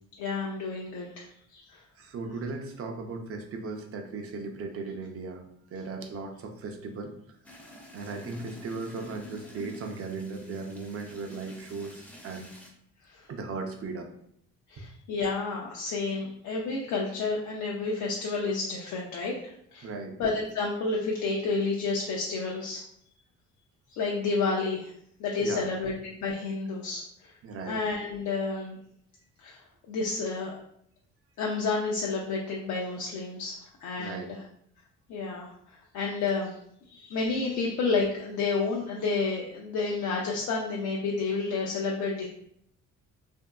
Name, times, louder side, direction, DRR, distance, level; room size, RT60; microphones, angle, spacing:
voice 1, 0.2-1.2 1.5-1.8 13.1-13.2 14.7-19.3 19.7-19.9 20.2-22.8 23.9-24.9 25.2-27.3 27.7-28.8 29.4-29.6 29.9-30.5 31.4-34.3 35.1-35.5 35.9-36.6 36.9-42.3, left 4 dB, 75° left, -1 dB, 0.5 m, -30 dB
voice 2, 2.0-5.4 5.7-7.1 7.9-12.5 13.3-14.1 19.8-20.1 25.4-25.7 27.4-27.8 34.0-34.3, right 3 dB, 50° right, 4 dB, 0.5 m, -37 dB
sound 1, 7.4-12.7, left 1 dB, 5° left, 0.5 m, -48 dB
2.8 x 2.6 x 2.2 m, 0.69 s
cardioid pair, 90°, 30 cm